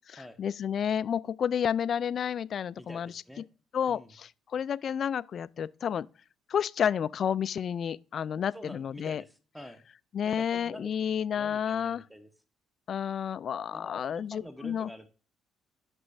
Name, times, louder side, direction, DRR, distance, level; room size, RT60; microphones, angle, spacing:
voice 1, 0.1-3.1 3.7-6.1 6.5-9.2 10.1-12.0 12.9-14.9, left 8 dB, 55° left, 0.3 m, -30 dB
voice 2, 2.8-3.5 3.9-4.1 8.5-9.9 10.2-10.9 11.3-12.3 13.7-15.1, equal, 5° right, 0.9 m, -47 dB
11.0 x 6.2 x 2.6 m
hypercardioid pair, 50°, 0 cm